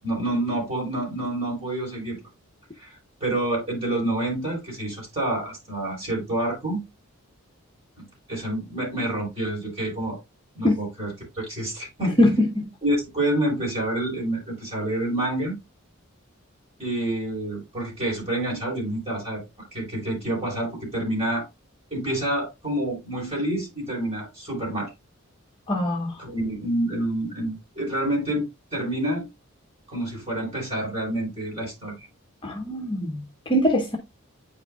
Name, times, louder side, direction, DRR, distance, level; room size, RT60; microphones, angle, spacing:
voice 1, 0.0-2.2 2.8-6.8 8.0-10.2 10.5-12.3 12.8-15.6 16.8-19.4 19.7-21.4 21.9-24.9 26.2-29.3 29.9-31.9, right 1 dB, 30° right, 4.1 m, -28 dB
voice 2, 12.2-12.6 25.7-26.1 32.4-34.0, left 1 dB, 25° left, 0.8 m, -22 dB
8.9 x 5.0 x 2.3 m
head